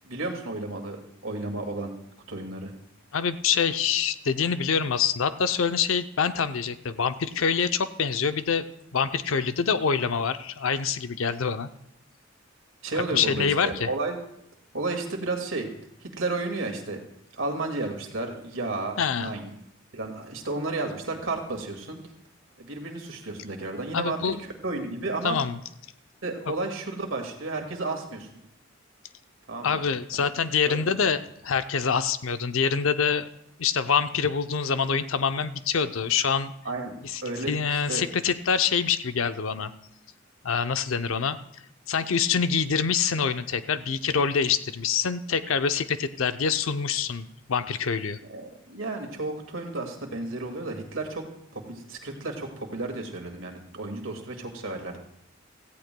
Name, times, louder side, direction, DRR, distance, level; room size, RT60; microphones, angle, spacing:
voice 1, 0.0-2.0 2.3-2.7 12.8-14.2 14.7-15.7 16.0-17.0 17.3-19.5 19.9-22.0 22.6-25.4 26.2-28.4 29.5-29.8 30.1-30.2 30.7-31.0 36.6-36.9 37.2-38.0 48.3-51.3 51.5-55.0, right 2 dB, 75° right, 3 dB, 2.1 m, -32 dB
voice 2, 3.1-8.6 8.9-11.7 13.1-13.9 19.0-19.3 23.9-24.4 25.2-25.6 29.6-33.3 33.6-36.5 37.0-37.2 37.5-39.7 40.4-41.4 41.9-48.2, left 6 dB, 80° left, 11 dB, 0.6 m, -25 dB
17.0 x 15.0 x 2.2 m, 0.78 s
head